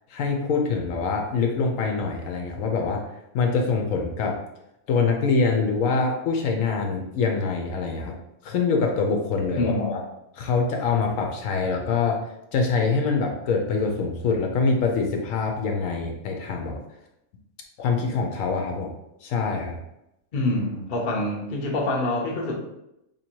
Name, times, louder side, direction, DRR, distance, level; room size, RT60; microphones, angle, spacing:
voice 1, 0.1-3.0 3.3-4.4 4.9-8.1 8.4-10.0 10.4-12.2 12.5-16.8 17.8-18.9 19.2-19.8, left 4 dB, 80° left, 2 dB, 1.0 m, -24 dB
voice 2, 9.5-10.0 20.3-22.6, left 2 dB, 45° left, 0 dB, 0.8 m, -26 dB
2.9 x 2.8 x 4.4 m, 0.84 s
omnidirectional pair, 1.4 m